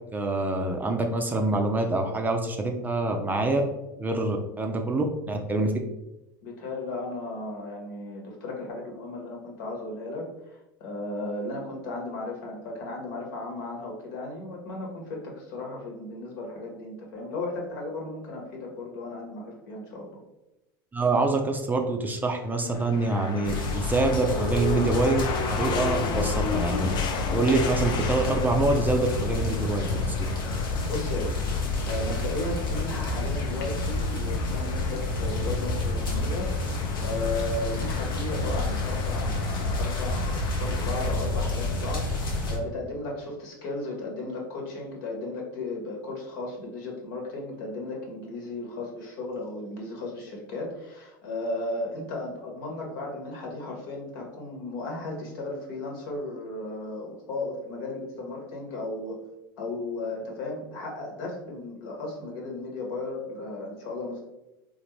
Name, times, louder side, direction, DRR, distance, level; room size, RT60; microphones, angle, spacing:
voice 1, 0.1-3.6 4.0-5.7 20.9-26.9 27.3-30.2, right 2 dB, 15° right, 3 dB, 0.5 m, -26 dB
voice 2, 6.4-20.2 30.9-31.4 31.9-59.2 59.6-64.2, left 2 dB, 65° left, 0 dB, 1.2 m, -35 dB
sound 1, 22.6-41.1, left 5 dB, 40° left, 0.5 m, -36 dB
sound 2, 23.4-42.6, left 2 dB, 85° left, 0.8 m, -29 dB
3.9 x 2.5 x 3.1 m, 0.96 s
hypercardioid pair, 85°, 12 cm